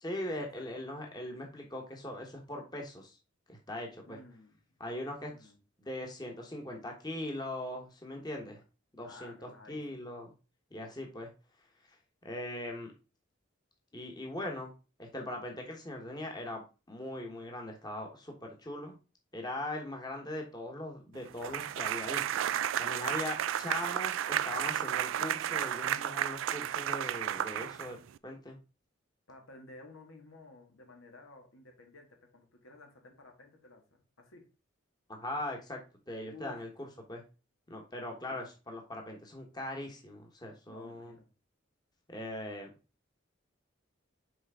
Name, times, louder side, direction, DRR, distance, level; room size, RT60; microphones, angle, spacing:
voice 1, 0.0-3.2 3.5-4.2 4.8-5.5 5.8-8.6 9.0-10.3 10.7-11.3 12.2-12.9 13.9-14.7 15.0-19.0 19.3-22.2 22.8-28.6 35.1-35.8 36.1-37.2 37.7-41.1 42.1-42.7, left 1 dB, 20° left, 1 dB, 1.2 m, -40 dB
voice 2, 4.1-4.6 5.3-5.6 9.0-10.0 22.3-22.7 29.3-32.1 32.3-34.4 36.2-36.6 38.3-38.4 40.7-41.3, left 2 dB, 85° left, 3 dB, 1.8 m, -54 dB
sound 1, 21.4-28.2, right 10 dB, 75° right, 0.3 m, -33 dB
6.3 x 4.5 x 3.6 m, 0.31 s
head